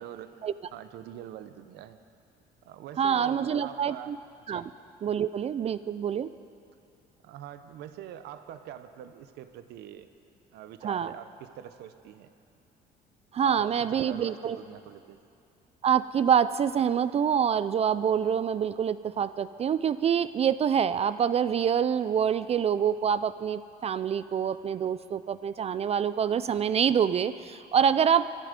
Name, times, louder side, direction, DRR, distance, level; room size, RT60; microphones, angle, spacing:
voice 1, 0.0-2.0 2.6-4.1 4.5-4.7 7.2-10.1 10.5-12.3 13.4-15.2, right 11 dB, 80° right, 11 dB, 0.7 m, -44 dB
voice 2, 3.0-4.2 4.5-4.6 5.0-6.3 10.8-11.1 13.3-14.6 15.8-28.4, right 8 dB, 40° right, 14 dB, 0.4 m, -26 dB
24.0 x 11.0 x 5.2 m, 2.6 s
cardioid pair, 110°, 17 cm